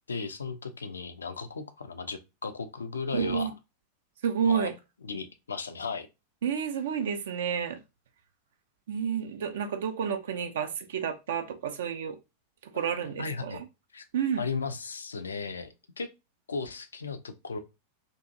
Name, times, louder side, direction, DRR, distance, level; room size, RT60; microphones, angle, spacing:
voice 1, 0.1-3.5 4.4-4.7 5.0-6.1 13.2-13.6 13.9-14.0 14.4-16.1 16.5-17.6, left 4 dB, 75° left, 0.3 m, -35 dB
voice 2, 3.1-3.5 4.2-4.7 6.4-7.8 8.9-12.2 12.7-13.6 14.1-14.4, right 7 dB, 60° right, 0.3 m, -30 dB
2.6 x 2.4 x 2.6 m
figure-of-eight pair, 90°, 0 cm